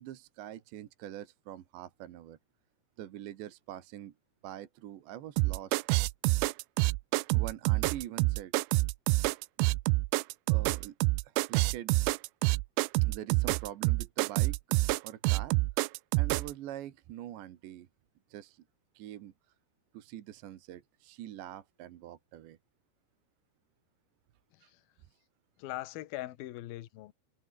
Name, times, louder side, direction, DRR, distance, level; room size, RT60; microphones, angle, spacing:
voice 1, 0.0-2.4 3.0-4.1 4.4-5.8 7.3-8.5 10.5-11.0 11.2-12.0 13.0-14.6 15.0-15.6 16.2-17.9 18.3-18.6 19.0-19.3 19.9-22.6 24.6-24.7, right 12 dB, 65° right, 3.5 m, -44 dB
sound 1, 5.4-16.5, right 24 dB, 85° right, 2.7 m, -27 dB
voice 2, 24.5-24.8 25.6-27.1, left 16 dB, 70° left, 2.3 m, -41 dB
omnidirectional pair, 6.0 m